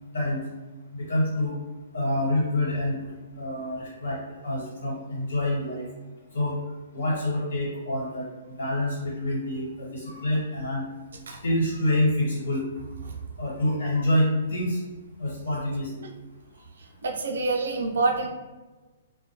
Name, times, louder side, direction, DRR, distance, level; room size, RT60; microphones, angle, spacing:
voice 1, 0.9-1.5 1.9-3.1 3.4-4.2 4.4-5.9 6.3-6.5 6.9-8.3 8.6-10.8 11.4-12.6 13.4-14.8 15.2-16.1, left 1 dB, 75° left, -5 dB, 1.3 m, -26 dB
voice 2, 17.0-18.3, right 3 dB, 75° right, 2 dB, 0.5 m, -26 dB
2.1 x 2.1 x 3.0 m, 1.2 s
hypercardioid pair, 170°, 0 cm